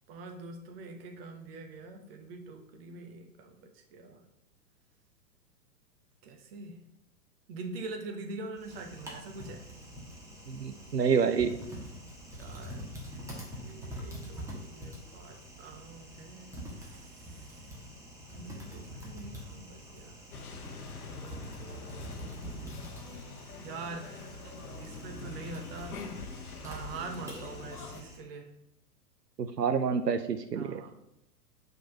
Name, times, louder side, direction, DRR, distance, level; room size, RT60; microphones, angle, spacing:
voice 1, 0.1-4.2 6.2-6.8 7.5-9.6 12.4-12.9 13.1-17.7 18.3-20.2 21.1-22.1 23.6-24.2 24.8-26.1 26.6-28.5 30.5-30.9, right 3 dB, 40° right, 5 dB, 1.1 m, -44 dB
Typing, 8.6-28.2, equal, 5° right, 1.3 m, -45 dB
voice 2, 10.5-11.5 29.4-30.9, right 6 dB, 90° right, 10 dB, 0.6 m, -28 dB
sound 1, 20.3-28.0, left 4 dB, 65° left, 1.0 m, -44 dB
5.2 x 3.9 x 5.2 m, 0.84 s
figure-of-eight pair, 105°, 47 cm